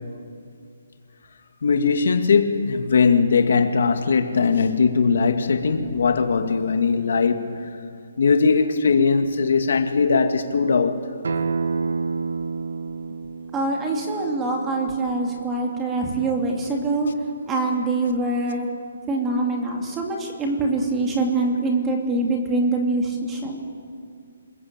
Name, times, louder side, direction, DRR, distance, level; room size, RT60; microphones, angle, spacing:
voice 1, 1.6-7.5 8.2-11.0, left 5 dB, 60° left, 2.1 m, -20 dB
Acoustic guitar, 11.2-16.4, right 4 dB, 75° right, 1.8 m, -30 dB
voice 2, 13.5-17.1 17.5-18.7 19.1-23.6, right 2 dB, 10° right, 2.7 m, -24 dB
28.0 x 22.0 x 8.9 m
hypercardioid pair, 175°, 0 cm